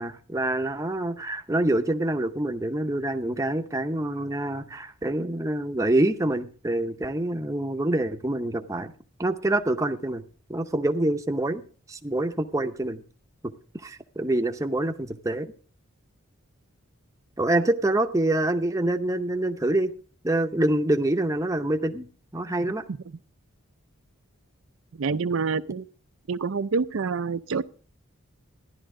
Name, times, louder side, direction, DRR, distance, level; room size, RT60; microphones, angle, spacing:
voice 1, 0.0-8.9 9.2-10.2 10.5-11.6 11.9-13.0 13.8-15.5 17.4-19.9 20.2-22.1 22.3-22.8, right 1 dB, 15° right, 0.7 m, -26 dB
voice 2, 25.0-25.9 26.3-27.6, right 5 dB, 70° right, 0.5 m, -27 dB
13.5 x 11.0 x 3.7 m
head